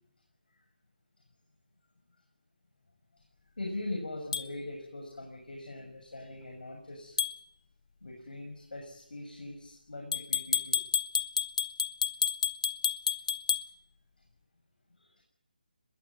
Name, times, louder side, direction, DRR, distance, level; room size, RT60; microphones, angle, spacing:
voice 1, 3.6-7.2 8.0-10.8 15.0-15.2, left 2 dB, 75° left, 2 dB, 6.7 m, -41 dB
sound 1, 4.3-4.5 7.2-7.4 10.1-13.7, left 7 dB, 45° left, 1.2 m, -30 dB
21.5 x 17.0 x 9.8 m, 0.74 s
figure-of-eight pair, 160°, 5 cm